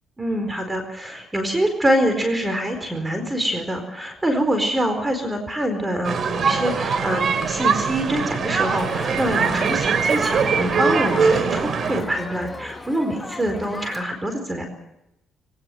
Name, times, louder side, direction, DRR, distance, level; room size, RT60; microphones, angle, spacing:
voice 1, 0.2-7.2 7.5-14.6, equal, 15° right, 6 dB, 4.4 m, -25 dB
sound 1, 6.0-12.0, right 5 dB, 55° right, 3.3 m, -22 dB
Crowd, 8.8-14.0, left 2 dB, 15° left, 2.5 m, -35 dB
22.5 x 18.5 x 7.8 m, 0.87 s
cardioid pair, 90°, 0 cm